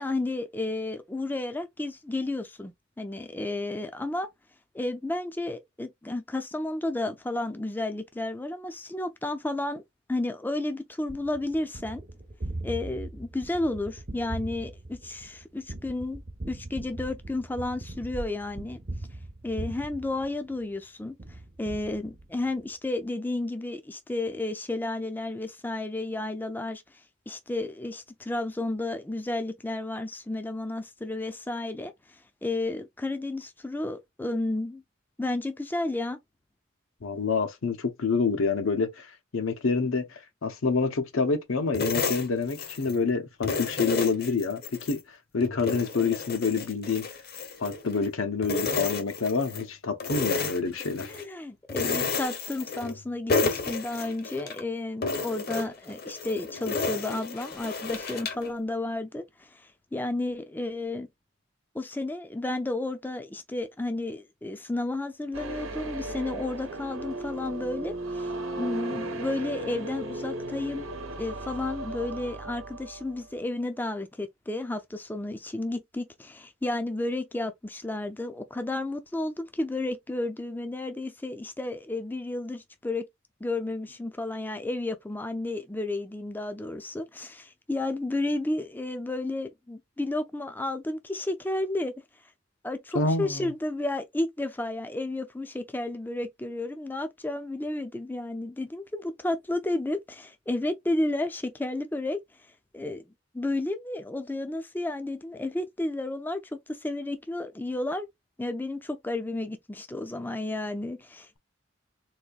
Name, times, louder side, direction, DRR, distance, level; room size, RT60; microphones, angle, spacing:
voice 1, 0.0-4.3 4.7-9.8 10.1-12.0 12.6-16.2 16.5-18.8 19.4-21.1 21.6-26.8 27.3-31.9 32.4-34.8 35.2-36.2 51.1-59.6 59.9-61.1 61.7-68.3 68.6-70.9 71.2-83.1 83.4-91.9 92.6-102.2 102.7-103.0 103.3-106.4 106.7-108.1 108.4-111.4, left 2 dB, 10° left, 0.4 m, -32 dB
Gunshot gunfire, 11.1-20.8 21.2-22.6, right 2 dB, 35° right, 0.6 m, -40 dB
voice 2, 37.0-47.1 47.6-51.1 92.9-93.5, left 4 dB, 80° left, 0.8 m, -27 dB
sound 1, 41.7-43.0 43.4-45.0 45.4-48.1 48.4-49.7 50.0-51.3 51.7-53.0 53.3-54.6 55.0-58.5, left 4 dB, 50° left, 0.8 m, -31 dB
sound 2, 65.3-73.2, right 2 dB, 75° right, 0.9 m, -36 dB
4.1 x 2.6 x 2.3 m
head